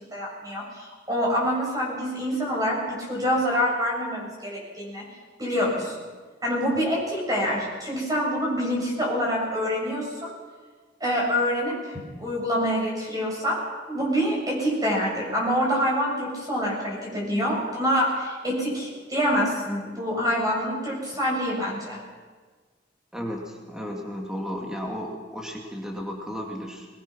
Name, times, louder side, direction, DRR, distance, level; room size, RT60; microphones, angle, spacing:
voice 1, 0.1-5.1 5.4-5.9 6.4-10.3 11.0-13.6 13.9-22.0, equal, 20° right, -3 dB, 7.7 m, -26 dB
voice 2, 23.1-26.9, equal, 5° right, 0 dB, 2.4 m, -34 dB
21.5 x 20.5 x 6.2 m, 1.5 s
head